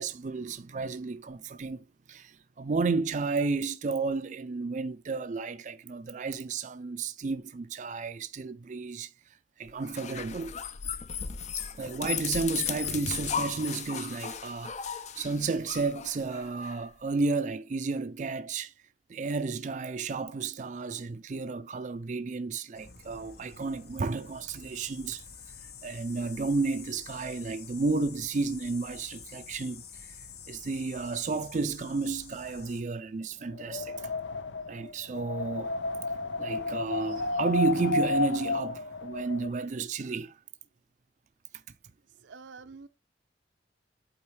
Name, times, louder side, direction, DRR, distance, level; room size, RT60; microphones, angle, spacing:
voice 1, 0.0-9.1 9.6-10.5 11.6-18.7 19.1-25.2 25.8-29.8 30.5-34.0 34.7-35.7 36.4-40.3, right 4 dB, 40° right, 0.4 m, -32 dB
sound 1, 9.8-16.8, left 7 dB, 40° left, 0.5 m, -36 dB
sound 2, 22.7-32.8, left 6 dB, 60° left, 1.0 m, -48 dB
Wind, 33.5-39.5, left 3 dB, 85° left, 0.6 m, -32 dB
voice 2, 42.1-42.9, right 4 dB, 85° right, 0.6 m, -48 dB
8.5 x 4.1 x 3.2 m
head